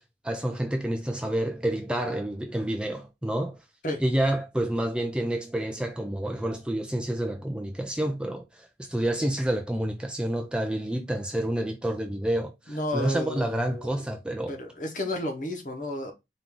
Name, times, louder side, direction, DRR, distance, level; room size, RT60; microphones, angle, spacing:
voice 1, 0.0-3.6 4.0-14.6, right 1 dB, 5° right, 0.4 m, -29 dB
voice 2, 12.7-14.0 14.5-16.1, left 1 dB, 45° left, 1.0 m, -32 dB
4.4 x 2.6 x 3.7 m
head